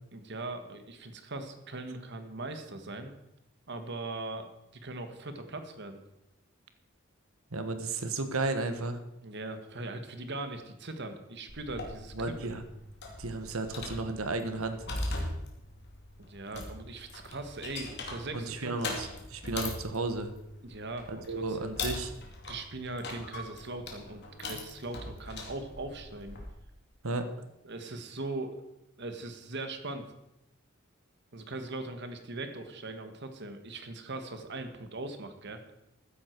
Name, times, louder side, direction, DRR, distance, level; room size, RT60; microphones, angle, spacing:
voice 1, 0.1-3.1 3.7-6.0 9.2-12.5 16.2-18.7 20.6-21.7 22.5-26.4 27.6-28.6 29.0-30.1 31.3-35.6, right 2 dB, 55° right, 8 dB, 1.5 m, -40 dB
voice 2, 7.5-9.0 12.1-12.6 13.2-14.9 18.3-20.3 21.1-22.1 27.0-27.3, right 3 dB, 75° right, 8 dB, 1.3 m, -33 dB
sound 1, 11.5-26.5, left 2 dB, 50° left, 2.6 m, -41 dB
14.5 x 10.0 x 4.6 m, 0.87 s
head